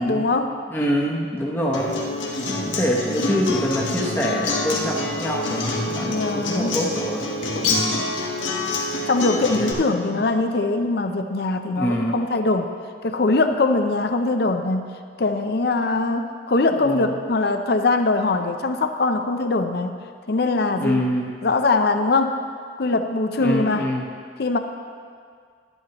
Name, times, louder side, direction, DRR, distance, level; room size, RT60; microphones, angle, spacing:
voice 1, 0.0-0.5 6.0-6.8 9.1-12.7 13.0-14.9 15.2-20.0 20.3-21.1 21.4-22.4 22.8-23.9 24.4-24.6, left 3 dB, 55° left, 7 dB, 0.5 m, -22 dB
voice 2, 0.7-2.0 2.5-7.3 7.6-8.0 9.6-10.2 11.7-12.2 16.8-17.2 20.8-21.3 23.4-24.1, equal, 10° left, -3 dB, 0.9 m, -25 dB
Acoustic guitar, 1.7-9.7, left 2 dB, 90° left, 1.4 m, -26 dB
11.5 x 10.5 x 3.0 m, 2.1 s
head